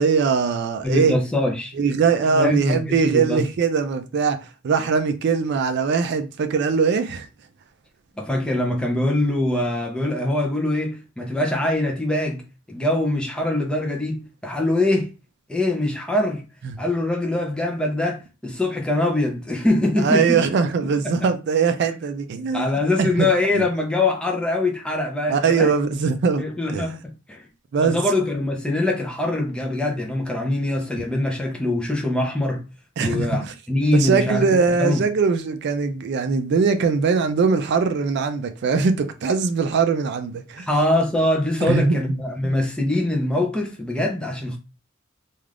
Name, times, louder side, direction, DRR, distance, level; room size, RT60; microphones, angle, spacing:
voice 1, 0.0-1.2 1.8-4.4 4.6-7.3 16.6-16.8 20.0-22.7 23.0-23.3 23.5-23.6 25.3-26.4 26.7-27.0 27.7-28.0 33.0-33.3 33.9-40.7 41.6-42.0 42.4-42.6, right 5 dB, 55° right, 0.3 m, -21 dB
voice 2, 0.8-1.7 2.3-3.4 8.2-12.4 12.7-15.1 15.5-16.4 16.8-20.4 21.0-21.3 22.5-25.7 26.4-27.0 27.3-27.4 27.8-32.6 33.0-35.0 40.6-44.6, left 1 dB, 5° left, 0.5 m, -23 dB
2.4 x 2.4 x 3.3 m
head